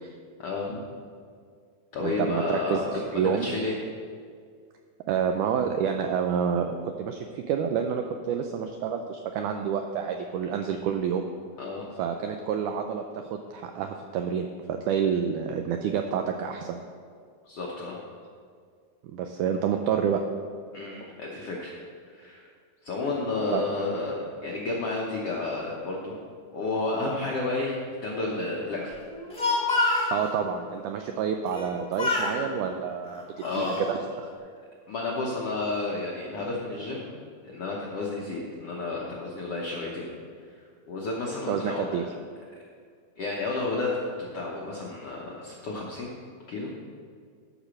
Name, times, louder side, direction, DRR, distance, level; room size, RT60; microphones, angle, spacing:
voice 1, 0.4-0.8 1.9-2.9 3.2-3.8 11.6-11.9 17.4-18.0 20.7-21.7 22.0-22.5 22.8-26.2 26.5-29.0 29.9-30.1 33.4-33.8 34.9-37.1 37.4-40.1 40.9-42.0 43.2-43.9 44.2-46.1 46.5-46.7, left 3 dB, 75° left, -3 dB, 1.3 m, -31 dB
voice 2, 2.0-3.5 5.1-11.3 12.0-16.8 19.0-20.2 23.5-23.7 30.1-33.2 33.5-34.3 41.5-42.1, right 7 dB, 85° right, 5 dB, 1.8 m, -28 dB
Speech, 29.1-30.1 31.5-31.7 32.0-32.4 33.1-33.9, left 2 dB, 5° left, 0.7 m, -27 dB
12.0 x 5.1 x 6.3 m, 2.1 s
omnidirectional pair, 4.2 m